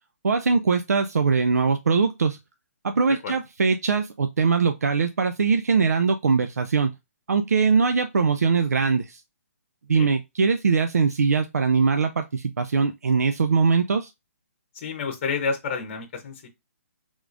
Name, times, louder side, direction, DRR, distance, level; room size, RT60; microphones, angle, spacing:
voice 1, 0.2-2.4 2.8-6.9 7.3-9.2 9.9-14.1, right 5 dB, 85° right, 0.6 m, -22 dB
voice 2, 14.7-16.5, left 5 dB, 35° left, 0.9 m, -29 dB
4.7 x 3.6 x 2.5 m
hypercardioid pair, 155°, 8 cm